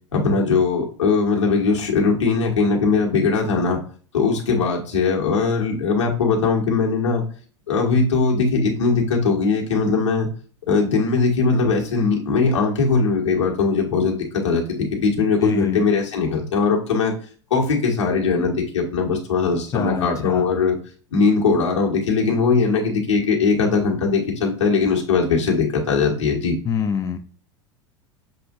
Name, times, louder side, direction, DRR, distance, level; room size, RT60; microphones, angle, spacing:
voice 1, 0.1-3.8 4.1-7.2 7.7-10.3 10.7-17.1 17.5-20.8 21.1-26.6, left 4 dB, 80° left, -1 dB, 1.3 m, -20 dB
voice 2, 15.4-15.8 19.7-20.4 26.7-27.2, left 7 dB, 20° left, 6 dB, 0.5 m, -25 dB
7.0 x 2.6 x 2.5 m, 0.42 s
figure-of-eight pair, 85°, 15 cm